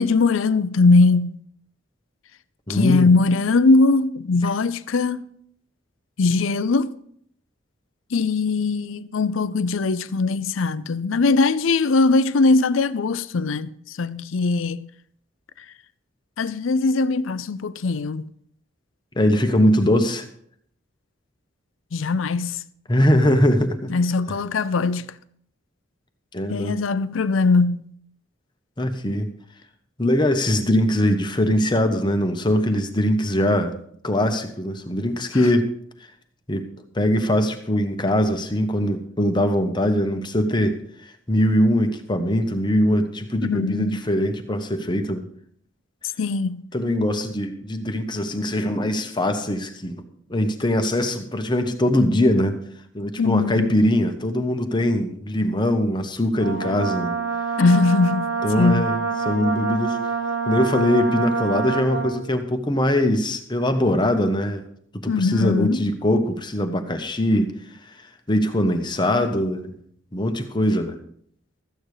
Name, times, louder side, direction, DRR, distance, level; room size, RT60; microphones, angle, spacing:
voice 1, 0.0-1.4 2.7-5.2 6.2-6.9 8.1-14.9 16.4-18.2 21.9-22.6 23.9-25.1 26.5-27.9 43.4-44.0 46.2-46.6 53.2-53.7 57.6-58.9 65.1-65.8, left 3 dB, 85° left, 0.5 m, -20 dB
voice 2, 2.7-3.1 4.4-4.5 19.1-20.3 22.9-23.9 24.3-24.4 26.3-26.8 28.8-29.3 30.0-33.8 34.0-35.7 36.5-36.7 36.9-40.8 41.0-45.3 46.7-52.6 52.9-57.2 58.4-60.0 60.5-64.6 64.9-67.5 68.0-69.8 70.1-71.0, left 1 dB, 25° left, 1.1 m, -22 dB
Brass instrument, 56.4-62.2, right 5 dB, 85° right, 4.3 m, -26 dB
14.0 x 8.8 x 4.9 m
head